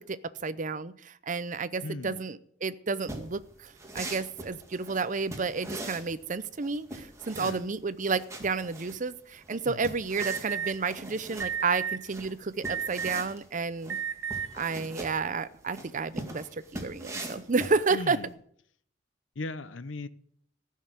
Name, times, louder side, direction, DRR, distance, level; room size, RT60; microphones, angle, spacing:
voice 1, 0.0-14.0 14.5-18.2, right 4 dB, 40° right, 15 dB, 0.6 m, -31 dB
voice 2, 1.8-2.3 7.3-7.7 9.6-9.9 17.9-18.3 19.4-20.1, left 2 dB, 85° left, 14 dB, 0.8 m, -38 dB
sound 1, 3.0-18.3, right 1 dB, 15° right, 1.9 m, -42 dB
Alarm, 10.2-10.7 11.4-12.0 12.6-13.3 13.9-14.5, right 8 dB, 80° right, 1.0 m, -32 dB
15.0 x 6.5 x 8.2 m, 0.65 s
head